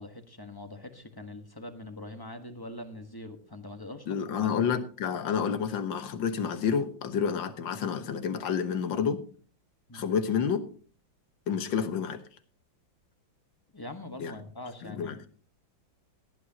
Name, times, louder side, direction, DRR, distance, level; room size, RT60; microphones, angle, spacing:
voice 1, 0.0-4.5 9.9-10.1 13.7-15.2, left 1 dB, 15° left, 7 dB, 1.1 m, -43 dB
voice 2, 4.1-9.2 9.9-10.6 11.5-12.2 14.2-14.3 14.8-15.2, left 7 dB, 75° left, 10 dB, 1.9 m, -29 dB
17.0 x 11.5 x 2.9 m, 0.40 s
omnidirectional pair, 2.1 m